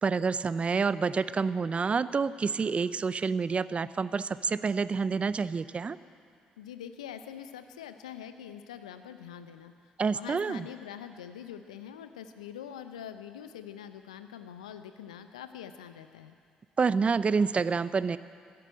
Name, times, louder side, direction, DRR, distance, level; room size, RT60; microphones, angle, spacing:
voice 1, 0.0-6.0 10.0-10.7 16.8-18.2, right 5 dB, 35° right, 16 dB, 0.5 m, -28 dB
voice 2, 6.6-9.7 10.1-16.4, left 9 dB, 85° left, 10 dB, 0.7 m, -44 dB
14.5 x 11.0 x 8.9 m, 2.4 s
hypercardioid pair, 45°, 4 cm